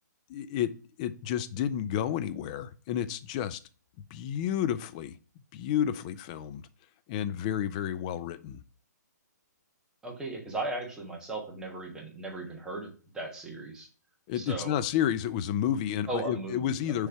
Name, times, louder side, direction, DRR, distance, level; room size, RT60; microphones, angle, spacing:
voice 1, 0.3-0.7 1.0-3.6 4.1-5.2 5.5-6.6 7.1-8.6 14.3-17.1, left 10 dB, 25° left, 13 dB, 0.3 m, -30 dB
voice 2, 10.0-13.9 14.3-14.8 16.1-17.1, right 2 dB, 5° right, -1 dB, 1.3 m, -37 dB
6.4 x 3.3 x 4.6 m, 0.38 s
hypercardioid pair, 155°, 10 cm